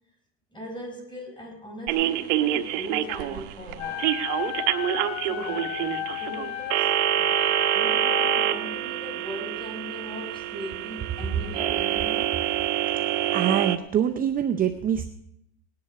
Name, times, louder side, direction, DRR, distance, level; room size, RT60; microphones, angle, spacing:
voice 1, 0.5-4.1 5.3-7.3 7.7-12.4, equal, 15° left, 2 dB, 4.6 m, -39 dB
sound 1, 1.9-13.8, right 13 dB, 80° right, 1.1 m, -26 dB
Wind instrument woodwind instrument, 3.8-8.6, left 13 dB, 85° left, 1.0 m, -33 dB
voice 2, 13.3-15.1, right 9 dB, 25° right, 7 dB, 0.6 m, -24 dB
18.0 x 10.5 x 4.8 m, 0.78 s
supercardioid pair, 135°, 36 cm